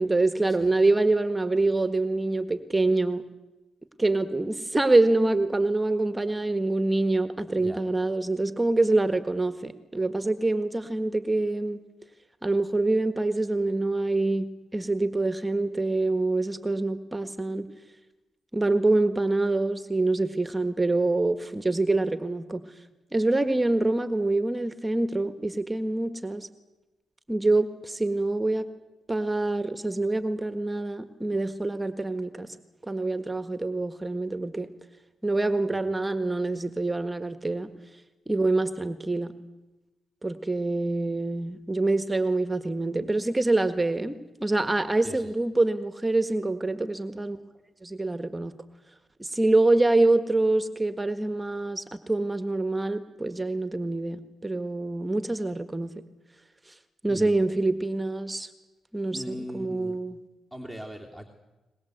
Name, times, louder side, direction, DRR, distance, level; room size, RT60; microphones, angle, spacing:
voice 1, 0.0-3.2 4.0-11.8 12.4-17.7 18.5-22.6 23.1-26.5 27.3-28.7 29.1-32.5 32.9-34.7 35.2-37.7 38.3-39.3 40.2-47.4 47.8-48.5 49.2-55.9 57.0-58.5 58.9-59.2 59.5-60.2, right 2 dB, 15° right, 10 dB, 1.6 m, -25 dB
voice 2, 59.1-60.0 60.5-61.3, equal, 5° left, 2 dB, 3.0 m, -39 dB
22.5 x 21.0 x 8.0 m, 1.1 s
cardioid pair, 65°, 0 cm